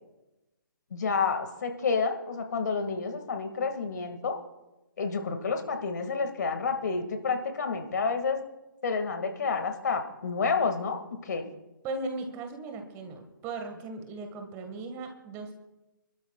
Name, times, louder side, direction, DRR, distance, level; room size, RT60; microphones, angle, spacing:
voice 1, 0.9-4.4 5.0-8.4 8.8-11.4, left 5 dB, 55° left, 6 dB, 2.0 m, -29 dB
voice 2, 11.8-15.5, right 3 dB, 20° right, 5 dB, 1.8 m, -37 dB
27.0 x 12.5 x 2.4 m, 1.0 s
figure-of-eight pair, 135°, 11 cm